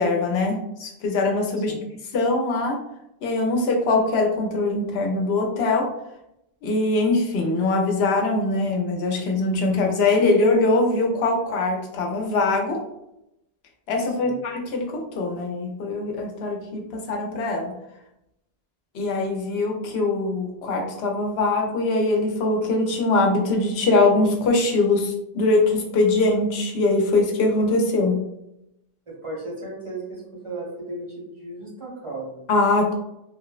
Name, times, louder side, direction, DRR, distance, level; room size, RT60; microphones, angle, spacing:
voice 1, 0.0-1.7 2.1-2.8 3.2-5.9 6.6-12.8 13.9-17.7 18.9-28.2 32.5-32.9, left 2 dB, 85° left, 1 dB, 0.8 m, -22 dB
voice 2, 14.0-14.4 29.1-32.4, right 2 dB, 35° right, -5 dB, 0.7 m, -35 dB
3.0 x 2.1 x 2.3 m, 0.84 s
omnidirectional pair, 1.0 m